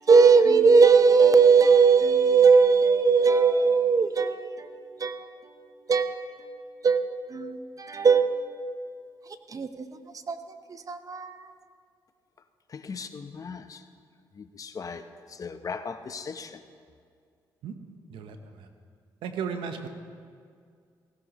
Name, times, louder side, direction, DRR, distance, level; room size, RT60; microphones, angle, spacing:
voice 1, 0.1-4.5 5.0-5.1 5.9-6.1 6.8-7.0 7.3-8.4 9.5-9.7 10.3-10.4 10.9-11.3, right 5 dB, 45° right, 0.9 m, -19 dB
voice 2, 12.9-13.6 14.6-15.0 15.4-16.5, left 5 dB, 45° left, 0.8 m, -37 dB
voice 3, 19.2-19.9, right 6 dB, 80° right, 1.0 m, -34 dB
16.5 x 15.5 x 3.0 m
supercardioid pair, 65°, 8 cm